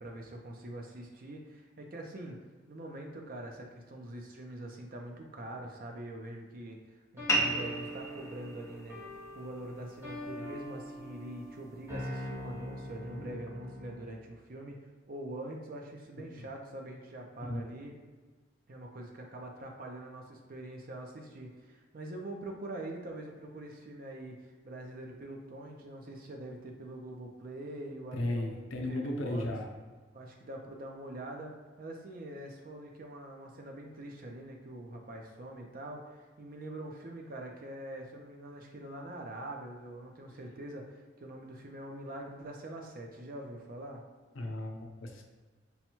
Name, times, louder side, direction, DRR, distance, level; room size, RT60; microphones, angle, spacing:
voice 1, 0.0-2.4 2.7-9.0 9.3-18.0 18.7-29.5 30.1-44.0, right 1 dB, 45° right, 1 dB, 0.5 m, -44 dB
sound 1, 7.2-14.1, equal, 10° right, 0.9 m, -43 dB
sound 2, 7.3-12.3, right 1 dB, 15° left, 0.4 m, -37 dB
voice 2, 28.1-29.7 44.4-45.2, left 1 dB, 85° left, 2 dB, 0.6 m, -35 dB
5.4 x 2.2 x 2.9 m, 1.4 s
head